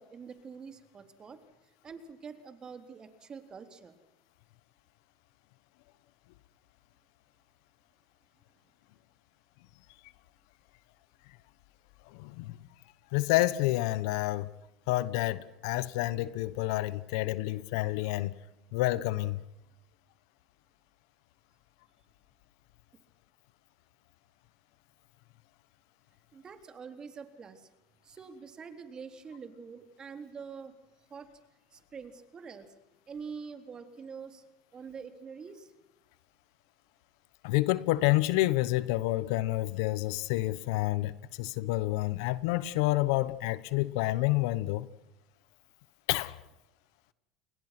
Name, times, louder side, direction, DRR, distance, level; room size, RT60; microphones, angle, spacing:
voice 1, 0.0-1.4 1.8-3.9 26.3-27.7 28.0-30.7 31.1-31.3 31.7-32.7 33.1-34.4 34.7-35.7, right 5 dB, 30° right, 3.8 m, -45 dB
voice 2, 12.1-12.6 13.1-14.5 14.9-18.3 18.7-19.4 37.4-44.9 46.1-46.4, left 18 dB, 75° left, 1.1 m, -29 dB
30.0 x 22.0 x 6.1 m
supercardioid pair, 100°, 3 cm